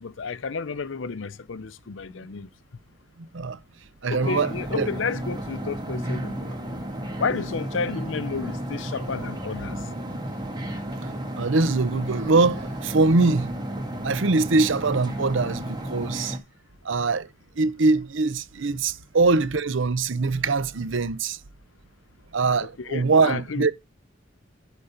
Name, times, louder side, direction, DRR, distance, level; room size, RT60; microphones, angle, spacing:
voice 1, 0.0-2.5 4.1-6.6 7.2-9.9 22.6-23.7, left 5 dB, 70° left, 0.6 m, -31 dB
voice 2, 3.2-3.6 4.0-4.9 11.0-11.1 11.4-13.5 14.0-16.4 16.8-17.3 17.6-21.4 22.3-23.7, right 3 dB, 70° right, 0.7 m, -23 dB
sound 1, 4.2-16.4, right 1 dB, 20° right, 1.8 m, -33 dB
11.5 x 4.1 x 5.7 m
head